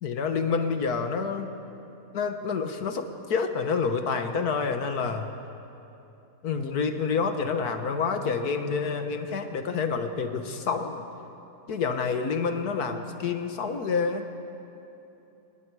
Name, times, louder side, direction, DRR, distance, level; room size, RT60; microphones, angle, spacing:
voice 1, 0.0-1.5 2.1-5.3 6.4-11.0 11.7-14.3, left 5 dB, 85° left, 7 dB, 1.8 m, -28 dB
27.0 x 20.0 x 4.8 m, 2.8 s
omnidirectional pair, 1.6 m